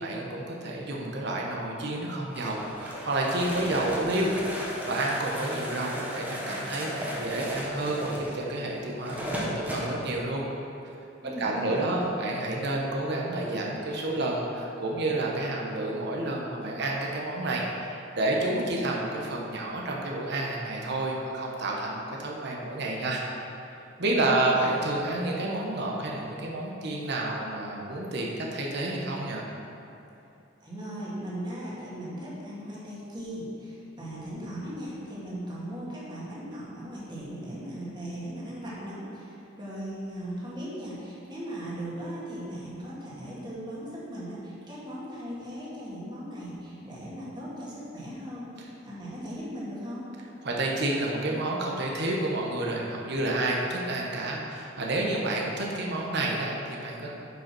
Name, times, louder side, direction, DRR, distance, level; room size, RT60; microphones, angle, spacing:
voice 1, 0.0-4.3 4.9-10.4 11.2-23.2 24.0-29.4 50.4-57.1, right 2 dB, 60° right, -2 dB, 1.1 m, -30 dB
sound 1, 2.3-9.9, equal, 10° right, 1.4 m, -36 dB
voice 2, 11.2-12.1 24.0-24.2 24.6-24.7 30.6-50.0, equal, 25° right, -8 dB, 2.4 m, -38 dB
9.5 x 5.5 x 6.1 m, 2.9 s
head